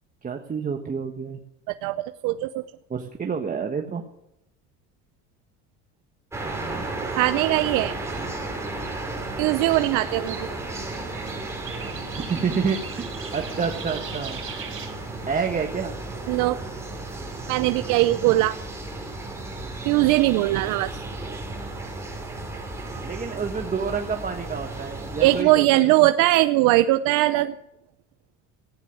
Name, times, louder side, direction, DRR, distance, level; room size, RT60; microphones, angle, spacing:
voice 1, 0.2-1.4 2.9-4.0 6.4-6.8 12.3-12.8 13.3-14.4 15.3-15.9 18.3-18.4 23.0-26.1, right 6 dB, 25° right, 3 dB, 1.4 m, -28 dB
voice 2, 1.7-2.6 7.2-8.0 9.4-10.4 16.3-16.6 17.5-18.6 19.8-21.0 25.2-27.5, right 17 dB, 70° right, 10 dB, 0.7 m, -20 dB
sound 1, 6.3-25.4, right 2 dB, 10° right, 5.3 m, -34 dB
sound 2, 9.7-14.9, right 6 dB, 40° right, 5.4 m, -40 dB
15.0 x 10.0 x 7.7 m, 0.83 s
supercardioid pair, 110°, 32 cm